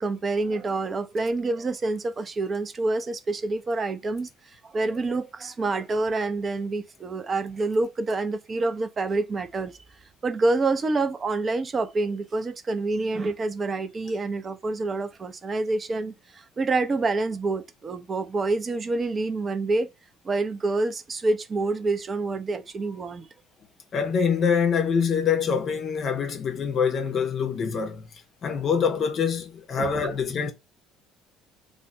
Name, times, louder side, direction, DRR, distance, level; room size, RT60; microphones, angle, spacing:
voice 1, 0.0-9.8 10.2-19.9 20.2-23.3 29.8-30.1, right 3 dB, 30° right, 0.5 m, -27 dB
voice 2, 23.9-30.5, left 6 dB, 40° left, 0.6 m, -25 dB
3.1 x 2.2 x 2.8 m
figure-of-eight pair, 55°, 0 cm